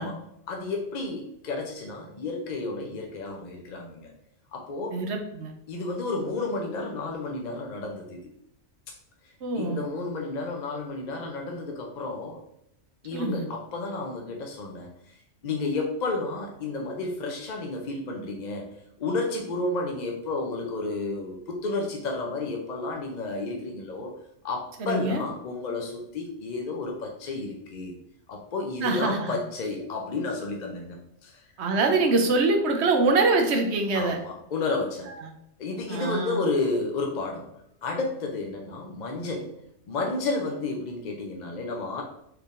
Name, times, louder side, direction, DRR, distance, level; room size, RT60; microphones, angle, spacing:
voice 1, 0.0-4.1 4.5-5.0 5.7-8.2 9.5-12.4 13.0-15.1 15.4-24.1 24.4-27.9 28.3-31.4 33.9-35.1 35.6-37.5 37.8-39.5 39.9-42.0, left 3 dB, 50° left, 1 dB, 0.5 m, -31 dB
voice 2, 4.9-5.5 9.4-9.8 13.1-13.4 24.8-25.2 28.8-29.3 31.6-34.2 35.9-36.5, right 3 dB, 70° right, 4 dB, 0.9 m, -24 dB
4.5 x 3.4 x 2.5 m, 0.78 s
omnidirectional pair, 1.2 m